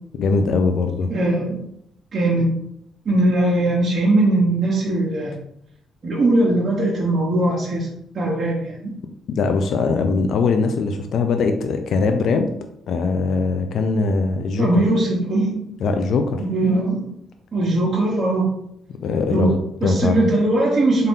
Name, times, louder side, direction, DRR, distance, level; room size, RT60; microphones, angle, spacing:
voice 1, 0.1-1.1 9.3-12.5 12.9-14.8 15.8-16.4 19.0-20.2, left 4 dB, 65° left, 6 dB, 0.4 m, -21 dB
voice 2, 1.1-1.6 2.1-2.5 3.0-5.3 6.0-7.9 8.1-8.9 14.6-15.7 16.4-17.0 17.5-18.5 19.3-19.5 19.8-21.1, right 2 dB, 40° right, -6 dB, 1.0 m, -20 dB
3.7 x 2.6 x 3.7 m, 0.74 s
cardioid pair, 90°, 0 cm